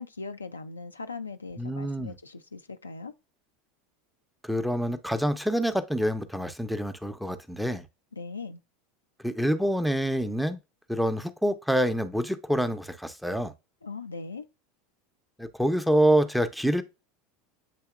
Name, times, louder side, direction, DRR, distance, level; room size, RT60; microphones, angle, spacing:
voice 1, 0.0-3.1 8.1-8.6 13.8-14.4, left 4 dB, 90° left, 0.3 m, -39 dB
voice 2, 1.6-2.2 4.4-7.8 9.2-10.6 10.9-13.5 15.4-16.8, equal, ahead, 0.5 m, -26 dB
8.1 x 2.8 x 2.3 m
figure-of-eight pair, 80°, 0 cm